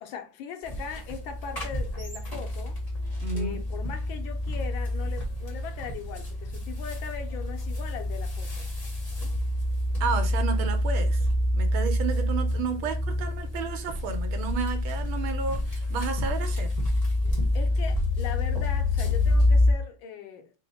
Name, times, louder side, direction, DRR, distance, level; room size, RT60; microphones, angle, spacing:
voice 1, 0.0-2.8 3.3-8.7 12.8-12.9 13.6-13.7 17.5-20.5, left 7 dB, 75° left, 1.3 m, -40 dB
sound 1, 0.6-19.7, left 1 dB, 30° left, 0.7 m, -27 dB
voice 2, 3.2-3.6 10.0-11.3 11.5-16.7, right 6 dB, 75° right, 1.5 m, -32 dB
3.7 x 2.1 x 4.0 m
omnidirectional pair, 2.3 m